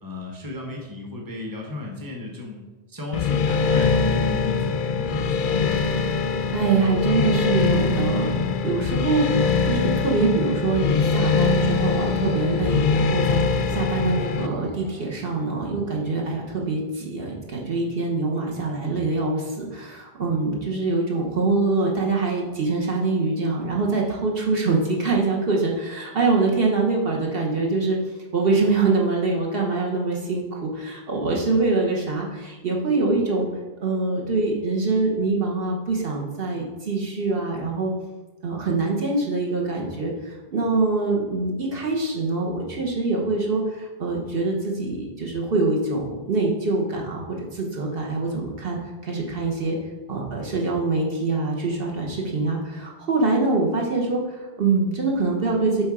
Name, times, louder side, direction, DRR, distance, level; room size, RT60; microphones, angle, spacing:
voice 1, 0.0-2.6 2.9-5.6, left 2 dB, 20° right, 0 dB, 1.1 m, -34 dB
sound 1, 3.1-14.5, left 5 dB, 60° left, 0.6 m, -23 dB
voice 2, 6.3-8.4 8.6-28.0 28.3-33.5 33.8-37.9 38.4-48.8 49.0-49.8 50.1-55.8, right 3 dB, 65° right, -1 dB, 1.3 m, -24 dB
sound 2, 10.7-15.5, equal, 10° left, 0.6 m, -41 dB
7.8 x 3.3 x 4.9 m, 1.1 s
omnidirectional pair, 1.1 m